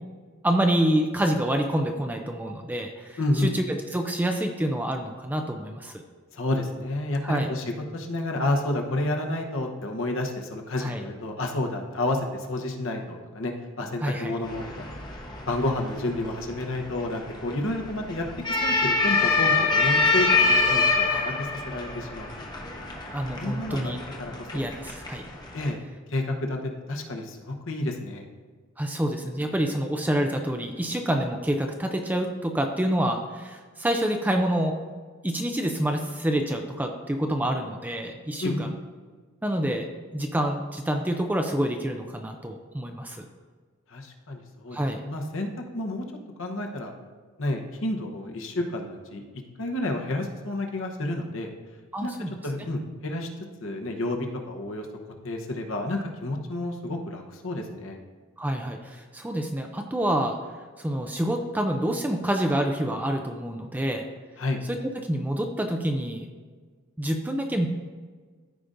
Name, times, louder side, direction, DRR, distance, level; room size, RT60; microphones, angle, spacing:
voice 1, 0.4-6.0 7.2-7.5 10.8-11.0 14.0-14.3 21.1-21.3 23.1-24.0 24.5-25.2 28.8-34.8 35.2-38.7 39.4-39.9 40.1-43.2 44.7-45.0 51.9-52.3 58.4-60.4 60.8-64.1 64.7-66.3 67.0-67.7, right 1 dB, 10° right, 4 dB, 0.4 m, -27 dB
voice 2, 3.2-3.5 6.3-7.6 7.9-14.9 15.5-18.3 18.6-22.5 23.4-24.6 25.5-25.8 26.1-26.6 26.9-28.2 38.4-38.7 43.9-46.0 46.4-46.9 47.4-49.2 49.6-51.5 52.0-52.1 52.4-53.3 53.6-54.9 55.2-58.0 64.4-64.6, left 1 dB, 60° left, 2 dB, 0.9 m, -30 dB
sound 1, 14.4-25.7, left 3 dB, 20° left, 0.8 m, -26 dB
14.0 x 5.0 x 2.6 m, 1.5 s
head